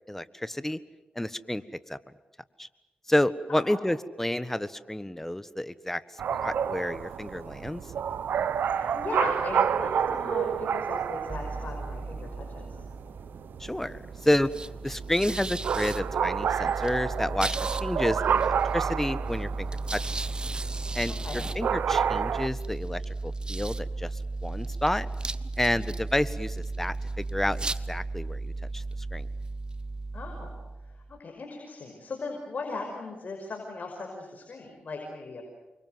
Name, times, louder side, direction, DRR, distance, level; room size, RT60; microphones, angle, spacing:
voice 1, 0.1-0.8 1.1-2.0 2.6-2.7 3.1-7.8 13.6-14.5 14.8-20.1 20.9-25.1 25.6-28.8 29.1-29.3, left 1 dB, 10° left, 14 dB, 1.4 m, -30 dB
sound 1, 6.2-22.5, right 7 dB, 85° right, 0.9 m, -30 dB
voice 2, 8.6-12.8 21.2-21.4 25.7-25.9 30.1-30.5 30.8-35.5, left 3 dB, 55° left, 2 dB, 5.6 m, -38 dB
sound 2, 11.3-31.2, right 2 dB, 30° right, 1.0 m, -35 dB
28.5 x 24.5 x 7.9 m, 1.1 s
cardioid pair, 70°, 3 cm